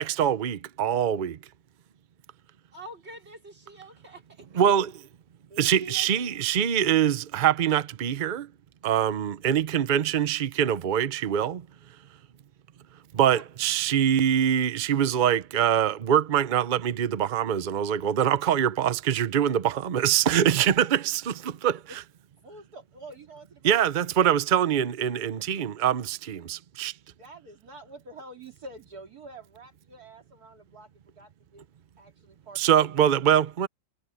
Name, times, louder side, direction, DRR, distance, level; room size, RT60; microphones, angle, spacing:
voice 1, 0.0-1.4 4.5-4.9 5.6-8.5 8.8-11.6 13.1-21.8 23.6-26.9 32.6-33.7, right 9 dB, 85° right, 0.4 m, -24 dB
voice 2, 2.7-4.5 13.2-13.5 21.9-22.0, right 1 dB, 35° right, 4.4 m, -46 dB
voice 3, 5.5-6.4 13.2-13.4 22.4-24.1 27.1-31.7 32.0-32.9, right 2 dB, 55° right, 3.2 m, -47 dB
omnidirectional pair, 1.9 m